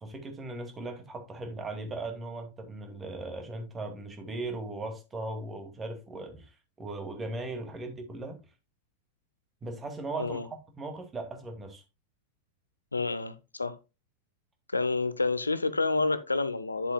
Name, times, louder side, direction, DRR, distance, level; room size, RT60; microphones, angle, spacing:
voice 1, 0.0-8.4 9.6-11.8, right 2 dB, 20° right, 2.2 m, -38 dB
voice 2, 12.9-13.8 14.7-16.9, left 3 dB, 80° left, 0.9 m, -29 dB
10.0 x 7.5 x 2.3 m
figure-of-eight pair, 90°, 0 cm